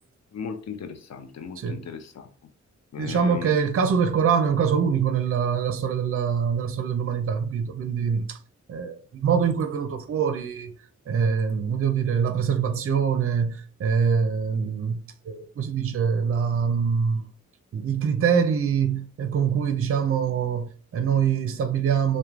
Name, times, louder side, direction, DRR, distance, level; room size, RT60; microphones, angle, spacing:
voice 1, 0.3-2.3 2.9-3.5, left 6 dB, 60° left, 0.5 m, -37 dB
voice 2, 3.0-8.4 8.7-10.7 11.1-17.3 17.7-22.2, right 6 dB, 50° right, 0.5 m, -24 dB
3.0 x 2.2 x 2.4 m
cardioid pair, 60°, 30 cm